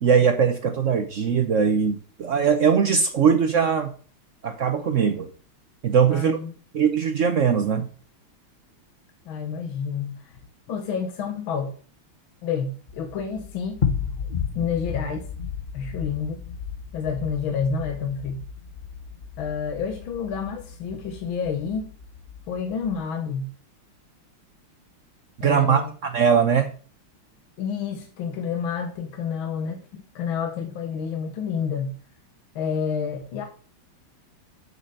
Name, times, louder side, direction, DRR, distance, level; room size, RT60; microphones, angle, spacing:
voice 1, 0.0-3.9 4.4-5.3 5.8-6.4 6.7-7.9 25.4-26.7, right 6 dB, 75° right, 0.7 m, -21 dB
voice 2, 6.1-6.5 9.3-10.3 10.7-11.7 12.4-13.9 14.6-15.3 15.7-16.4 16.9-18.4 19.4-21.9 22.5-23.5 25.4-25.9 27.6-32.0 32.6-33.4, left 6 dB, 75° left, 1.8 m, -29 dB
sound 1, 12.9-23.0, left 6 dB, 35° left, 0.8 m, -34 dB
7.0 x 6.9 x 6.5 m
omnidirectional pair, 2.3 m